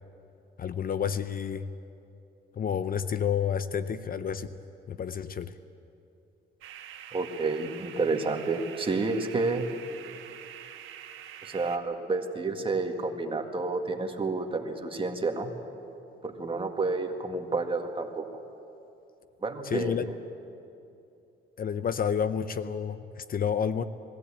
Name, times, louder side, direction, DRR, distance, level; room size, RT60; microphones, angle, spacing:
voice 1, 0.6-1.7 2.5-4.6 4.9-5.5 19.6-20.1 21.6-23.8, left 7 dB, 45° left, 13 dB, 0.7 m, -30 dB
sound 1, 6.6-11.8, right 10 dB, 85° right, 1.4 m, -45 dB
voice 2, 7.1-9.7 11.4-15.5 16.2-18.2 19.4-19.9, right 3 dB, 25° right, 4 dB, 1.9 m, -30 dB
21.0 x 15.5 x 8.6 m, 2.7 s
cardioid pair, 90°, 20 cm